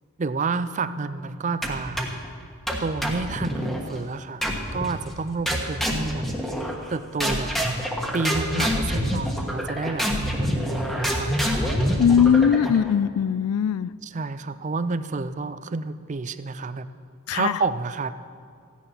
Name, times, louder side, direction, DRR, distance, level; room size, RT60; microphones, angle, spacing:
voice 1, 0.2-2.1 2.8-4.4 4.7-6.3 6.9-7.5 8.1-11.4 14.0-16.9 17.3-18.1, right 4 dB, 35° right, 13 dB, 0.5 m, -29 dB
sound 1, 1.6-2.3 2.7-3.8 4.4-5.0 5.5-6.9 7.2-12.9, equal, ahead, 1.3 m, -26 dB
voice 2, 12.0-13.9 17.3-17.6, left 7 dB, 90° left, 19 dB, 0.3 m, -20 dB
15.5 x 9.7 x 5.8 m, 2.4 s
head